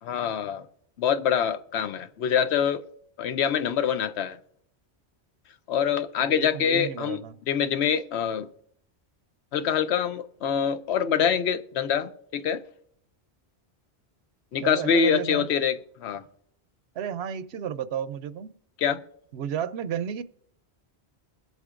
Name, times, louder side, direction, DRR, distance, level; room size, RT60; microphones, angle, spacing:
voice 1, 0.0-0.7 1.0-2.8 3.2-4.4 5.7-7.2 7.5-8.5 9.5-12.6 14.5-16.2 18.8-19.0, left 8 dB, 85° left, 1.0 m, -25 dB
voice 2, 6.2-7.4 14.6-15.5 17.0-18.5 19.3-20.2, right 9 dB, 80° right, 0.8 m, -32 dB
23.0 x 8.1 x 2.5 m
omnidirectional pair, 1.1 m